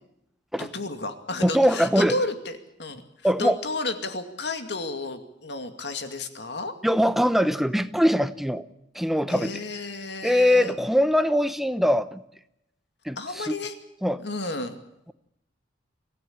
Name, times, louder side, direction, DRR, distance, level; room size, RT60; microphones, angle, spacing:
voice 1, 0.6-3.0 3.4-6.7 9.3-10.7 13.2-13.7 14.2-14.8, left 2 dB, 65° left, 7 dB, 2.3 m, -32 dB
voice 2, 1.4-2.2 3.2-3.6 6.8-8.6 8.9-9.6 10.2-12.2 13.0-13.5 14.0-14.2, equal, ahead, 12 dB, 0.8 m, -22 dB
25.5 x 16.5 x 8.8 m, 0.82 s
head